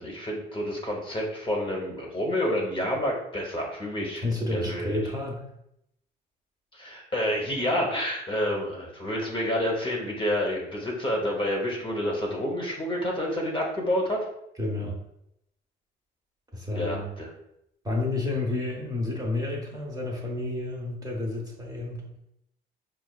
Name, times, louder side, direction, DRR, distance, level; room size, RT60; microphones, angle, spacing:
voice 1, 0.0-4.2 4.5-5.0 6.7-14.2 16.7-17.3, equal, 25° left, -1 dB, 0.8 m, -29 dB
voice 2, 4.1-5.5 14.6-14.9 16.5-17.1 17.8-22.1, left 2 dB, 20° right, -2 dB, 0.9 m, -30 dB
4.7 x 2.4 x 2.3 m, 0.79 s
cardioid pair, 90°, 20 cm